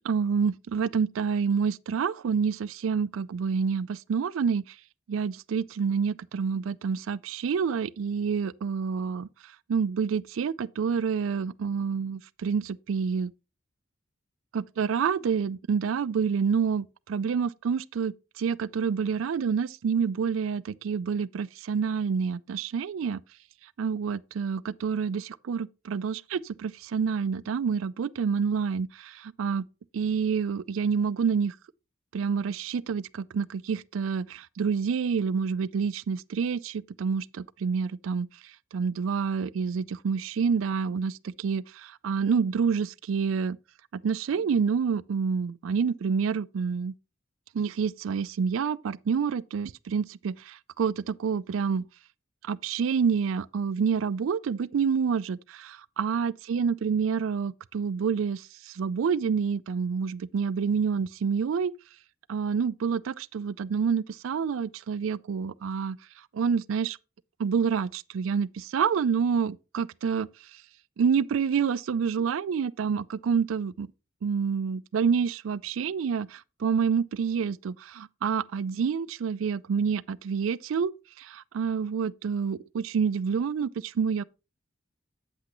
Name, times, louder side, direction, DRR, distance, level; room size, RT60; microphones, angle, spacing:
voice 1, 0.0-4.8 5.1-13.3 14.5-23.2 23.8-29.7 29.9-31.6 32.1-43.6 43.9-46.9 47.5-51.8 52.4-61.7 62.3-66.0 66.3-67.0 67.4-70.6 71.0-73.9 74.2-84.2, right 6 dB, 80° right, 0.4 m, -28 dB
8.7 x 8.1 x 3.0 m
head